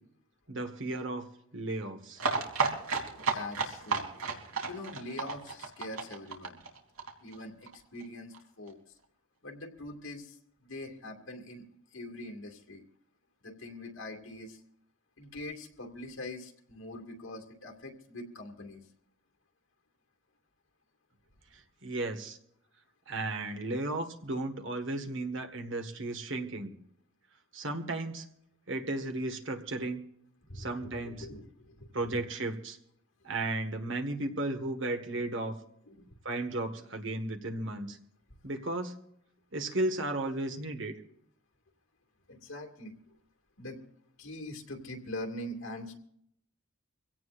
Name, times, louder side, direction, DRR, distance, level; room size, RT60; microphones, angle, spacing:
voice 1, 0.5-1.3 1.5-2.2 21.5-22.4 23.1-26.8 27.5-28.3 28.7-30.0 30.5-31.3 31.9-32.8 33.2-35.6 36.2-38.0 38.4-39.0 39.5-40.9, right 2 dB, 60° right, 5 dB, 1.7 m, -34 dB
sound 1, 2.2-7.7 8.0-8.1 8.3-8.4 8.7-8.8, right 4 dB, 90° right, 3.2 m, -32 dB
voice 2, 3.3-4.1 4.7-6.6 7.2-9.0 9.4-12.8 13.4-14.6 15.2-18.9 30.5-32.2 35.9-36.1 42.3-42.9 43.6-43.8 44.2-46.0, left 1 dB, 75° left, 1 dB, 2.4 m, -43 dB
24.5 x 17.0 x 2.6 m, 0.70 s
head